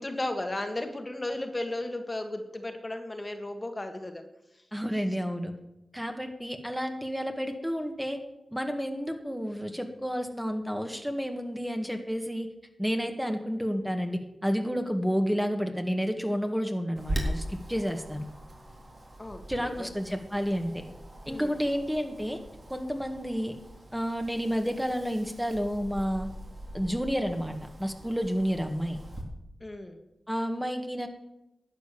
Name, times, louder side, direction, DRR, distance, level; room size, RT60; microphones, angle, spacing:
voice 1, 0.0-4.2 19.2-19.9 21.3-21.6 29.6-30.0, left 1 dB, 30° left, 5 dB, 1.9 m, -35 dB
voice 2, 4.7-5.5 5.9-8.2 8.5-12.5 12.8-18.3 19.5-20.8 21.3-22.4 22.7-23.5 23.9-26.3 26.7-29.0 30.3-31.1, equal, 5° right, 5 dB, 1.8 m, -30 dB
Wind, 17.0-29.2, right 1 dB, 55° right, 3.6 m, -41 dB
12.0 x 8.0 x 7.0 m, 0.90 s
cardioid pair, 40°, 0 cm